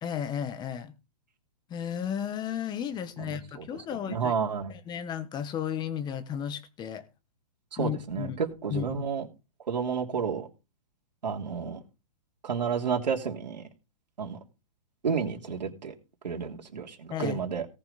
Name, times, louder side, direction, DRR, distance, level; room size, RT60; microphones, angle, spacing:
voice 1, 0.0-0.9 1.7-4.3 4.7-7.0 7.8-8.4 8.7-9.1 17.1-17.4, left 9 dB, 20° left, 1.4 m, -34 dB
voice 2, 3.2-3.7 4.0-4.7 7.7-9.3 9.7-10.5 11.2-11.8 12.4-13.7 14.2-14.4 15.0-15.9 16.2-17.7, right 6 dB, 85° right, 3.1 m, -31 dB
18.0 x 6.0 x 4.3 m
hypercardioid pair, 135°, 21 cm